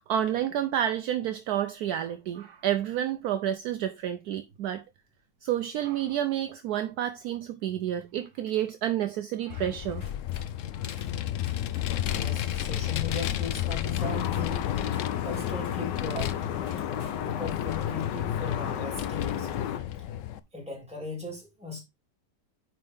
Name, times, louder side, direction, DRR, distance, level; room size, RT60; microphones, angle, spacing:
voice 1, 0.0-4.8 5.4-10.0, right 11 dB, 70° right, 1.0 m, -29 dB
Vehicle, 9.5-20.4, left 11 dB, 70° left, 0.7 m, -32 dB
sound 1, 10.0-10.5 10.9-11.1 11.5-12.3 12.5-13.7 14.3-14.5 14.9-15.8 16.2-16.4 16.7-17.2, left 2 dB, 45° left, 2.9 m, -53 dB
voice 2, 12.1-14.7 15.2-16.9 17.2-19.6 20.5-21.8, left 3 dB, 5° right, 3.0 m, -38 dB
sound 2, 14.0-19.8, left 9 dB, 90° left, 1.4 m, -33 dB
9.3 x 4.5 x 3.5 m
omnidirectional pair, 1.8 m